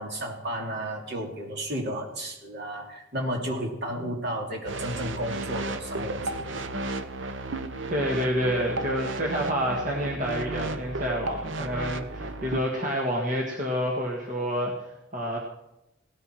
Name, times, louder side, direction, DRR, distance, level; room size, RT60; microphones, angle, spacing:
voice 1, 0.0-6.6, equal, 55° right, 1 dB, 2.9 m, -33 dB
sound 1, 4.7-12.6, right 2 dB, 75° right, 0.9 m, -33 dB
voice 2, 7.9-15.4, equal, 40° right, -1 dB, 1.8 m, -28 dB
17.5 x 13.0 x 4.7 m, 0.88 s
head